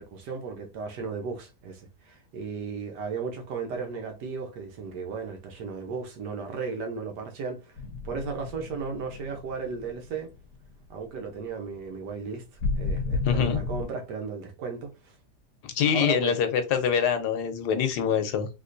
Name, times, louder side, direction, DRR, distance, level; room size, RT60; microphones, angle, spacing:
voice 1, 0.0-7.8 8.0-10.3 10.9-15.1 15.9-16.3, right 5 dB, 85° right, 1.4 m, -35 dB
sound 1, 7.8-10.6 10.9-11.1 12.6-13.9, left 3 dB, 60° left, 1.0 m, -32 dB
voice 2, 13.2-13.6 15.6-18.5, left 8 dB, 80° left, 1.2 m, -25 dB
3.6 x 2.9 x 2.5 m
omnidirectional pair, 1.8 m